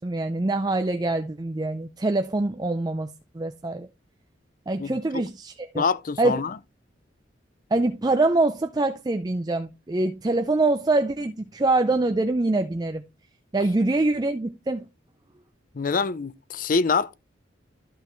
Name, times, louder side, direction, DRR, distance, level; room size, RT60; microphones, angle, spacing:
voice 1, 0.0-3.1 3.3-3.9 4.7-5.8 6.2-6.4 7.7-13.0 13.5-14.9, right 2 dB, 20° right, 0.4 m, -24 dB
voice 2, 4.8-5.2 5.7-6.6 15.7-17.1, left 4 dB, 45° left, 0.5 m, -25 dB
12.0 x 5.6 x 3.0 m
head